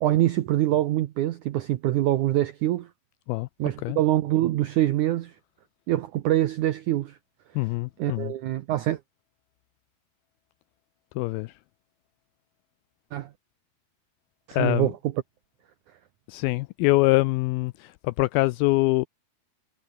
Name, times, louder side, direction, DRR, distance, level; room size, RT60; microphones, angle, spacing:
voice 1, 0.0-2.9 3.6-5.4 5.9-7.2 8.0-9.0 13.1-13.3 14.5-14.9, right 14 dB, 90° right, 1.7 m, -24 dB
voice 2, 7.6-8.3 11.2-11.6 14.5-14.9 16.3-19.1, left 21 dB, 90° left, 2.1 m, -24 dB
omnidirectional pair, 4.8 m